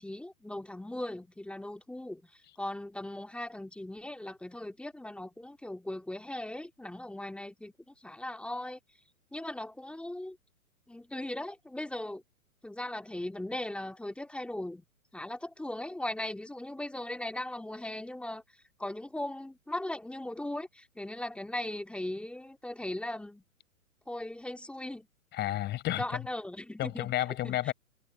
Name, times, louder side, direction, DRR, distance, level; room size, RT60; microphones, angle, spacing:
voice 1, 0.0-8.8 9.3-10.4 10.9-12.2 12.6-14.8 15.1-18.4 18.8-23.4 24.1-25.1 26.0-27.1 27.4-27.7, left 1 dB, ahead, 2.3 m, -38 dB
voice 2, 25.3-26.0 26.8-27.7, left 14 dB, 25° left, 5.4 m, -31 dB
figure-of-eight pair, 125°, 44 cm